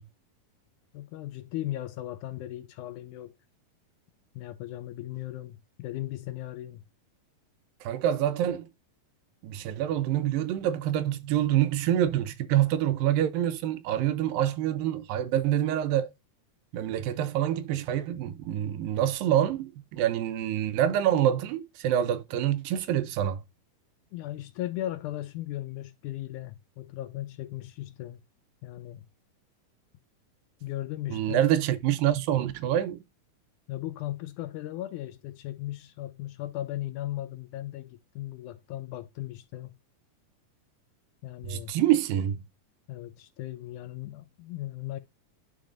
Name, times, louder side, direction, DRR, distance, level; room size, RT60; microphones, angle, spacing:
voice 1, 0.9-3.4 4.4-6.8 24.1-28.2 28.6-29.0 30.6-31.4 33.7-39.8 41.2-41.7 42.9-45.0, left 14 dB, 80° left, 1.8 m, -37 dB
voice 2, 7.8-8.6 9.4-16.1 16.7-23.4 31.1-33.0 41.5-42.4, right 11 dB, 85° right, 2.5 m, -26 dB
10.5 x 4.7 x 2.5 m
omnidirectional pair, 4.0 m